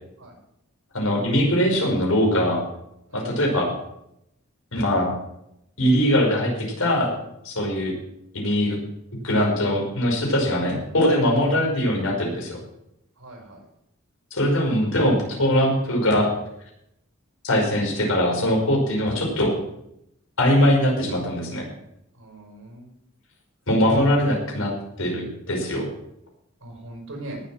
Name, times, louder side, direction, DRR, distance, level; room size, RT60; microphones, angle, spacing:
voice 1, 0.9-2.6 3.1-3.7 4.7-5.1 5.8-7.1 7.4-7.9 8.3-8.8 9.2-12.6 14.3-16.3 17.4-19.5 20.4-21.7 23.7-24.7 25.0-25.9, equal, 85° left, 0 dB, 5.5 m, -21 dB
voice 2, 13.2-13.6 22.1-22.9 26.6-27.4, right 1 dB, 75° right, 1 dB, 5.4 m, -40 dB
18.5 x 7.8 x 6.4 m, 0.79 s
head